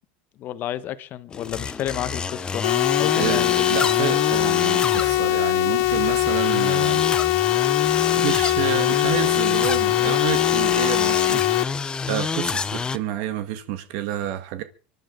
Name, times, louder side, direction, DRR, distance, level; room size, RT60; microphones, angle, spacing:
voice 1, 0.4-2.7 3.0-3.6, left 12 dB, 40° left, 1.2 m, -30 dB
sound 1, 1.3-13.0, left 5 dB, 15° left, 0.7 m, -27 dB
sound 2, 2.6-11.6, left 19 dB, 60° left, 0.7 m, -21 dB
voice 2, 3.1-7.0 8.1-14.6, right 12 dB, 60° right, 1.6 m, -29 dB
25.5 x 11.5 x 3.8 m
supercardioid pair, 140°, 5 cm